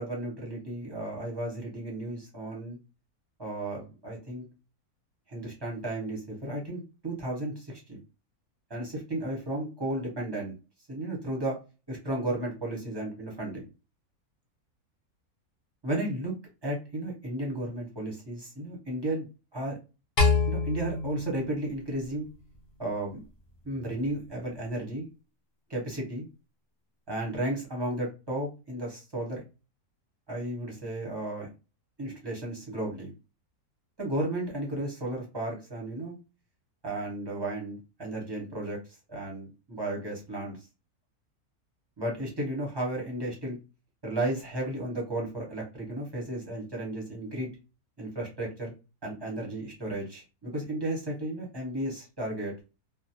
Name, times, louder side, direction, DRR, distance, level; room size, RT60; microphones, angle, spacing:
voice 1, 0.0-2.8 3.4-4.4 5.3-8.0 8.7-10.5 10.9-11.6 11.9-13.7 15.8-16.3 16.6-19.3 19.5-19.8 20.4-22.3 22.8-23.2 23.6-25.0 25.7-26.2 27.1-29.4 30.3-31.5 32.0-33.1 34.0-36.2 36.8-38.8 39.1-40.6 42.0-43.6 44.0-47.5 48.0-48.7 49.0-52.6, right 1 dB, 25° right, -2 dB, 0.7 m, -34 dB
sound 1, 20.2-22.6, left 4 dB, 55° left, 0.7 m, -27 dB
2.5 x 2.0 x 2.8 m, 0.30 s
omnidirectional pair, 1.6 m